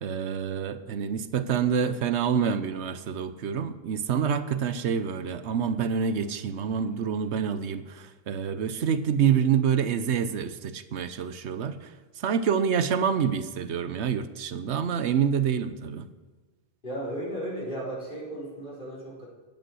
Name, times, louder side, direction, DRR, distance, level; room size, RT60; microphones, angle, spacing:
voice 1, 0.0-16.1, right 7 dB, 80° right, 12 dB, 1.1 m, -27 dB
voice 2, 16.8-19.3, right 1 dB, 50° left, -5 dB, 4.5 m, -35 dB
10.5 x 8.7 x 6.3 m, 1.3 s
omnidirectional pair, 1.1 m